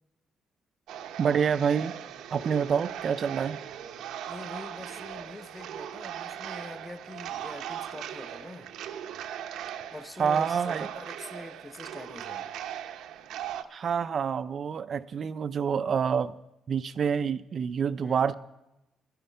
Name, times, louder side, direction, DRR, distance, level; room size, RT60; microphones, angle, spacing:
sound 1, 0.9-13.6, right 10 dB, 85° right, 0.7 m, -39 dB
voice 1, 1.2-1.9 2.3-3.6 10.2-10.9 13.7-16.4 16.7-18.3, right 7 dB, 50° right, 13 dB, 0.4 m, -27 dB
voice 2, 4.3-8.7 9.9-12.5 18.0-18.3, left 2 dB, 15° left, 11 dB, 0.8 m, -44 dB
11.5 x 11.5 x 5.5 m, 0.91 s
cardioid pair, 90°, 0 cm